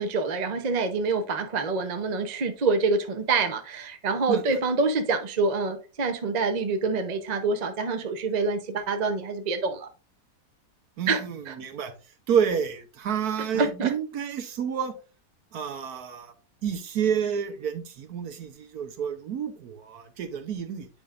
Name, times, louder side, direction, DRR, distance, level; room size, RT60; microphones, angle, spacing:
voice 1, 0.0-9.9 11.1-11.5 13.5-13.9, right 4 dB, 45° right, 0.5 m, -26 dB
voice 2, 4.3-4.6 11.0-11.9 12.3-14.9 15.5-16.3 16.6-20.9, right 7 dB, 65° right, 1.3 m, -29 dB
8.7 x 5.4 x 2.4 m
omnidirectional pair, 1.9 m